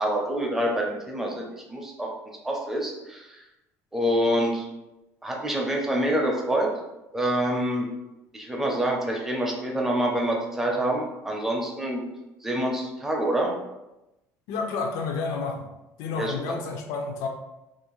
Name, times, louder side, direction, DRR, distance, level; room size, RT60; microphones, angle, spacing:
voice 1, 0.0-2.1 2.4-3.4 3.9-4.7 5.2-6.7 7.1-7.9 8.3-12.0 12.4-13.5 16.1-16.4, right 1 dB, 5° right, -1 dB, 0.4 m, -26 dB
voice 2, 14.5-15.7 16.0-17.3, left 4 dB, 75° left, 3 dB, 0.4 m, -30 dB
2.5 x 2.1 x 2.9 m, 0.96 s
cardioid pair, 160°, 6 cm